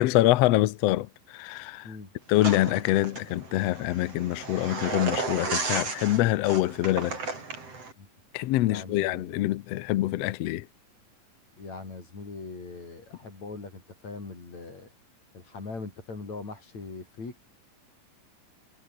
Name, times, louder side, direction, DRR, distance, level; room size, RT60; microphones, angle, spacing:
voice 1, 0.0-1.9 2.3-7.2 8.3-10.6, left 16 dB, 90° left, 1.4 m, -25 dB
sound 1, 2.4-7.9, right 4 dB, 45° right, 6.5 m, -34 dB
voice 2, 8.6-9.4 11.6-14.9 15.3-17.4, left 3 dB, 50° left, 7.7 m, -41 dB
omnidirectional pair, 4.0 m